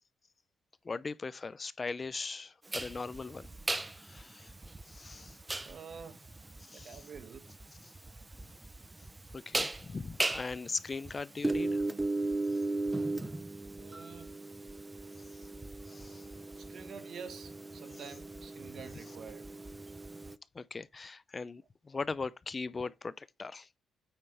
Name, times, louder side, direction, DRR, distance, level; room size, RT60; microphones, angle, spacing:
voice 1, 0.8-3.5 3.9-4.5 4.8-5.4 6.6-7.0 9.3-11.8 12.5-12.6 15.9-16.3 20.5-23.7, left 4 dB, 30° left, 0.5 m, -40 dB
sound 1, 2.7-20.3, right 2 dB, 15° right, 0.6 m, -37 dB
voice 2, 5.7-6.3 6.7-7.5 13.8-14.4 16.6-19.5, right 6 dB, 60° right, 1.8 m, -48 dB
8.8 x 5.3 x 3.4 m
cardioid pair, 90°, 0 cm